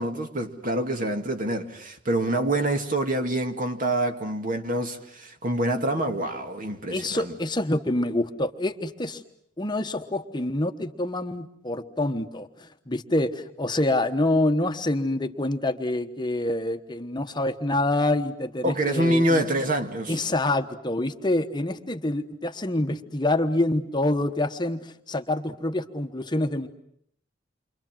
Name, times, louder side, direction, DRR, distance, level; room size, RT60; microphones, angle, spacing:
voice 1, 0.0-7.3 18.6-20.2, right 1 dB, 45° right, 2.3 m, -26 dB
voice 2, 6.9-9.2 9.6-19.4 20.1-26.7, left 1 dB, 25° left, 1.2 m, -26 dB
29.0 x 25.0 x 7.6 m
head